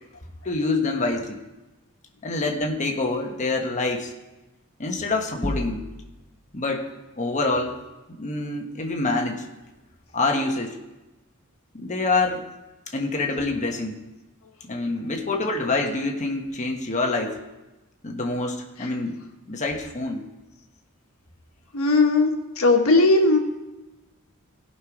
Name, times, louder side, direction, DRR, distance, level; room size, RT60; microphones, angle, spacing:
voice 1, 0.4-1.4 2.2-4.1 4.8-5.9 6.5-6.9 7.2-7.8 8.1-9.4 10.1-10.8 11.7-12.4 12.9-14.0 14.7-17.4 18.0-19.2 19.5-20.3, left 3 dB, 35° left, 2 dB, 1.3 m, -26 dB
sound 1, 5.4-6.4, left 1 dB, 10° left, 0.7 m, -31 dB
voice 2, 21.7-23.4, left 3 dB, 75° left, 2 dB, 1.5 m, -18 dB
16.5 x 5.7 x 4.9 m, 1.1 s
head